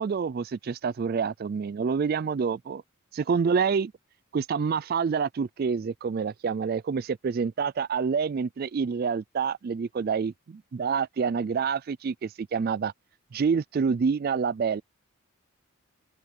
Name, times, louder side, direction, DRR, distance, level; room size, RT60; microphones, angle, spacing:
voice 1, 0.0-2.8 3.1-3.9 4.3-12.9 13.3-14.8, right 6 dB, 45° right, 0.3 m, -27 dB
open air
head